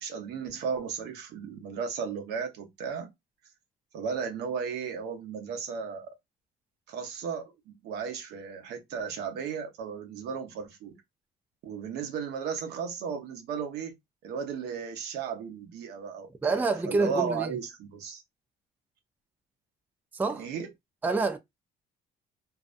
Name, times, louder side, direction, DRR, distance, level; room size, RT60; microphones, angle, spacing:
voice 1, 0.0-3.1 3.9-6.1 6.9-11.0 11.6-13.9 14.2-18.2 20.3-20.7, right 6 dB, 80° right, 0.9 m, -35 dB
voice 2, 16.4-17.5 20.1-20.5 21.0-21.4, right 3 dB, 10° right, 0.4 m, -27 dB
2.6 x 2.1 x 2.4 m
cardioid pair, 110°, 17 cm